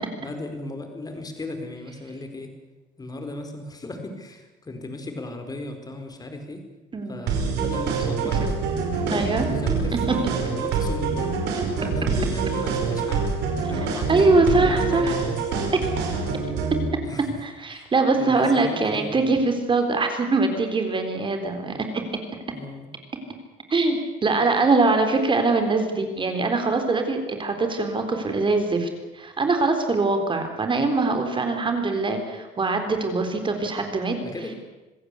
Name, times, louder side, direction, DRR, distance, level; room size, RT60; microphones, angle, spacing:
voice 1, 0.2-2.6 3.0-6.7 7.1-8.6 8.9-11.3 11.8-13.3 13.7-15.8 17.0-17.4 17.7-17.8 18.2-19.4 22.5-22.9 34.2-34.5, left 2 dB, 20° left, 6 dB, 4.5 m, -36 dB
sound 1, 7.3-16.9, right 5 dB, 90° right, 5.3 m, -26 dB
voice 2, 9.1-9.4 14.1-15.2 17.4-22.0 23.7-34.2, right 3 dB, 30° right, 5 dB, 4.0 m, -22 dB
26.0 x 16.0 x 8.4 m, 1.1 s
cardioid pair, 110°, 17 cm